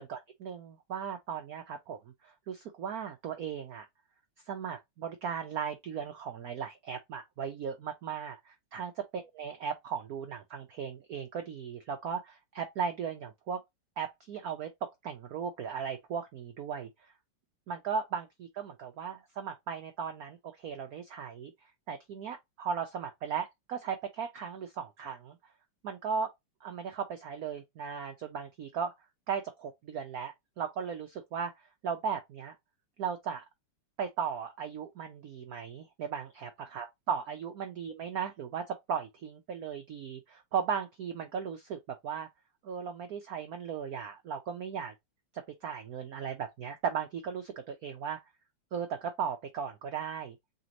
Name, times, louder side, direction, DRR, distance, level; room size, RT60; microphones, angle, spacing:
voice 1, 0.0-3.9 4.5-8.9 9.4-13.6 14.0-17.1 17.7-18.3 18.6-25.4 25.8-26.3 26.6-28.9 29.3-32.6 33.0-33.4 34.0-42.3 42.6-44.9 45.3-48.2 48.7-50.4, right 7 dB, 85° right, 0.8 m, -37 dB
4.1 x 2.9 x 3.8 m
omnidirectional pair, 2.4 m